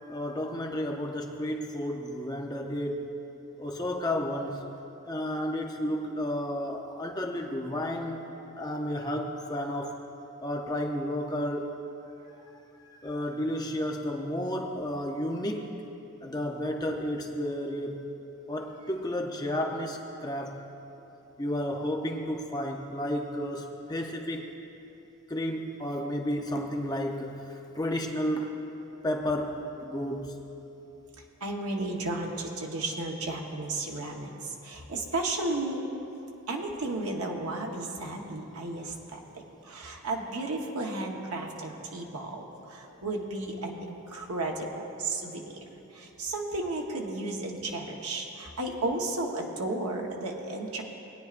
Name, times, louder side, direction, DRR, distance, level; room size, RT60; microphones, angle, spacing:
voice 1, 0.0-3.0 3.6-4.7 5.0-8.2 8.6-10.0 10.4-11.8 12.9-15.7 16.2-18.0 18.5-20.7 21.4-24.5 25.3-28.5 29.0-30.4, left 1 dB, 15° left, 2 dB, 0.6 m, -32 dB
voice 2, 31.4-35.8 36.5-45.5 45.9-50.8, right 2 dB, 80° right, 0 dB, 1.1 m, -33 dB
20.0 x 9.4 x 2.5 m, 2.9 s
head